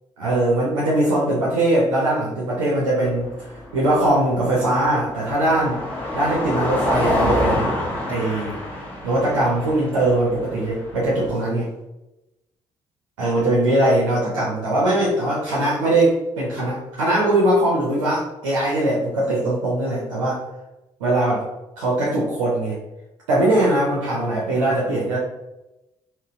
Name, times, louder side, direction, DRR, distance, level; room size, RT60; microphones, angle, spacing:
voice 1, 0.2-5.8 6.1-7.8 8.1-8.6 9.0-11.7 13.2-20.4 21.0-21.5 21.8-22.8 23.3-25.2, right 1 dB, 75° right, -5 dB, 0.6 m, -21 dB
Car passing by, 3.0-11.3, left 1 dB, 10° left, 1.1 m, -27 dB
3.8 x 2.1 x 2.4 m, 0.96 s
figure-of-eight pair, 45°, 16 cm